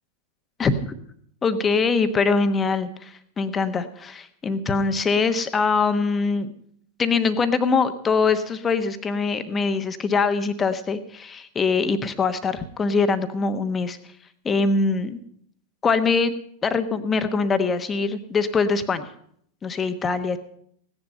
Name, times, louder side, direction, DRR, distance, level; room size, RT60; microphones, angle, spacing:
voice 1, 1.4-6.5 7.0-14.0 14.4-15.2 15.8-16.3 16.6-19.1 19.6-20.4, left 4 dB, 20° left, 10 dB, 1.1 m, -23 dB
17.0 x 10.5 x 5.4 m, 0.66 s
figure-of-eight pair, 90°, 0 cm